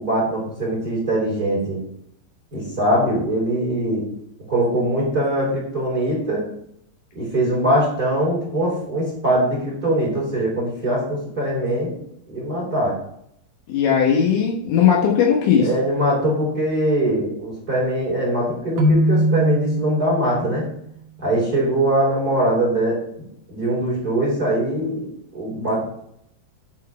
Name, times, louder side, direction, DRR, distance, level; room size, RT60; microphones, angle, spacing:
voice 1, 0.0-1.8 2.5-4.0 4.5-6.4 7.1-11.9 12.3-13.0 15.5-20.6 21.2-25.1 25.3-25.8, right 1 dB, 20° right, -4 dB, 3.4 m, -22 dB
voice 2, 13.7-15.7, left 7 dB, 70° left, -1 dB, 3.2 m, -17 dB
Keyboard (musical), 18.8-20.6, equal, 80° right, 3.4 m, -20 dB
12.0 x 4.6 x 4.3 m, 0.71 s
omnidirectional pair, 5.7 m